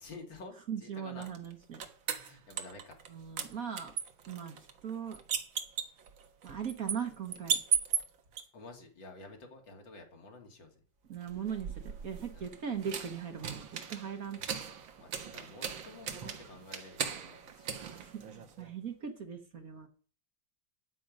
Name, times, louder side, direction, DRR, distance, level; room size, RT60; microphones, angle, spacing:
voice 1, 0.0-1.3 2.1-3.0 8.5-10.8 12.3-12.5 15.0-17.9, left 3 dB, 70° left, 2 dB, 3.0 m, -50 dB
voice 2, 0.7-1.8 3.1-3.9 4.3-5.2 6.4-7.6 11.1-14.4 17.8-19.9, right 7 dB, 50° right, 6 dB, 1.4 m, -39 dB
sound 1, 1.2-3.1 3.4-8.4 11.2-18.7, right 7 dB, 80° right, 2.1 m, -37 dB
13.5 x 9.3 x 5.2 m, 0.42 s
omnidirectional pair, 2.1 m